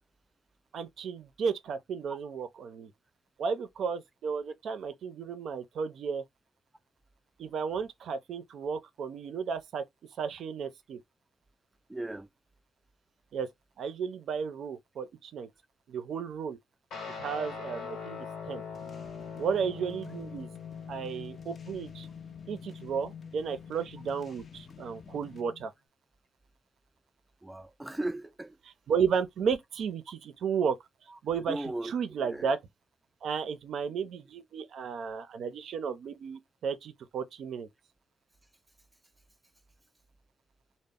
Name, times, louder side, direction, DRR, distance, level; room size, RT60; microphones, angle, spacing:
voice 1, 0.7-2.9 3.4-6.2 7.4-9.8 10.2-11.0 13.3-13.5 13.8-15.5 15.9-16.6 17.2-18.6 19.4-20.5 20.9-22.1 22.5-25.7 28.9-30.8 31.2-32.6 33.2-37.7, right 6 dB, 70° right, 0.5 m, -33 dB
voice 2, 11.9-12.3 27.4-28.6 31.1-31.9 32.2-32.5, right 2 dB, 15° right, 0.4 m, -37 dB
Guitar, 16.9-25.7, left 6 dB, 80° left, 1.0 m, -43 dB
sound 1, 18.7-25.4, left 6 dB, 50° left, 0.4 m, -52 dB
2.0 x 2.0 x 3.5 m
cardioid pair, 80°, 0 cm